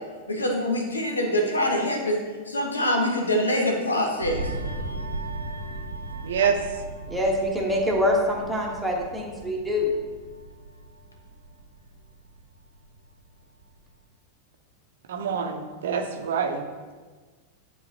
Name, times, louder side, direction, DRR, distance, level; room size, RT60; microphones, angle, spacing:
voice 1, 0.3-4.4, left 1 dB, 75° left, 0 dB, 1.2 m, -25 dB
sound 1, 4.2-13.2 13.6-13.8, right 2 dB, 90° right, 0.8 m, -37 dB
voice 2, 6.2-6.6 15.1-16.6, right 7 dB, 60° right, 5 dB, 0.6 m, -26 dB
voice 3, 7.1-9.9, left 1 dB, 5° right, -1 dB, 1.2 m, -25 dB
10.0 x 3.9 x 2.8 m, 1.4 s
figure-of-eight pair, 90°, 0 cm